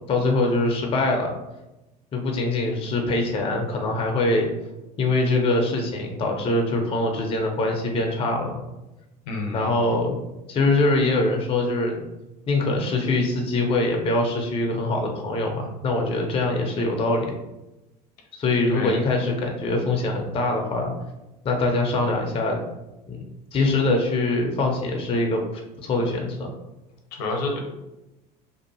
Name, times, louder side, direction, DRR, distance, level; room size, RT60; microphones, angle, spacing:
voice 1, 0.1-1.3 2.1-4.5 5.0-8.5 9.5-10.2 10.5-12.0 12.5-17.3 18.3-20.9 21.4-22.6 23.1-23.2 23.5-25.4 25.8-26.5, left 2 dB, 25° left, 2 dB, 0.5 m, -23 dB
voice 2, 9.3-9.7 18.7-19.0 27.2-27.6, left 2 dB, 65° left, 1 dB, 0.8 m, -28 dB
2.6 x 2.4 x 2.7 m, 0.98 s
figure-of-eight pair, 70°, 21 cm